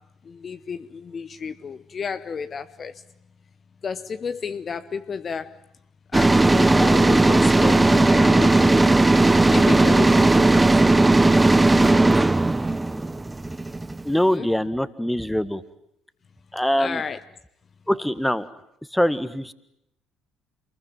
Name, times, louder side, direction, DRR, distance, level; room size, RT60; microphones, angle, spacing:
voice 1, 0.3-2.9 3.8-5.6 6.1-9.0 9.5-10.6 14.3-14.5 16.8-17.2, left 6 dB, 40° left, 1.0 m, -31 dB
sound 1, 6.1-14.1, right 2 dB, 15° right, 1.0 m, -17 dB
voice 2, 14.0-15.6 16.5-17.0 17.9-18.5 18.9-19.5, equal, 5° left, 1.7 m, -23 dB
28.0 x 21.0 x 9.4 m
figure-of-eight pair, 55°, 0 cm